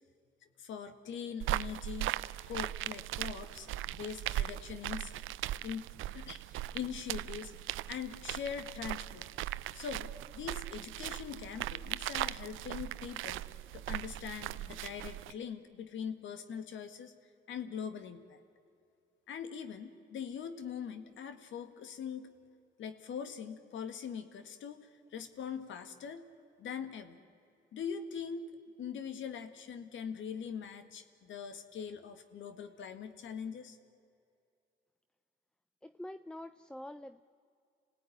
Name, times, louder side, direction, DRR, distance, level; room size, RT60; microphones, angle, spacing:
voice 1, 0.6-2.1 2.5-5.1 5.6-9.3 9.7-13.4 13.7-17.1 17.5-18.4 19.3-22.3 22.8-26.3 26.6-27.2 27.7-28.5 28.8-33.8, left 7 dB, 75° left, 10 dB, 1.9 m, -42 dB
sound 1, 1.4-15.3, right 14 dB, 85° right, 0.5 m, -39 dB
voice 2, 35.8-37.2, left 1 dB, 5° left, 13 dB, 0.5 m, -46 dB
26.5 x 17.5 x 9.9 m, 2.5 s
cardioid pair, 90°, 20 cm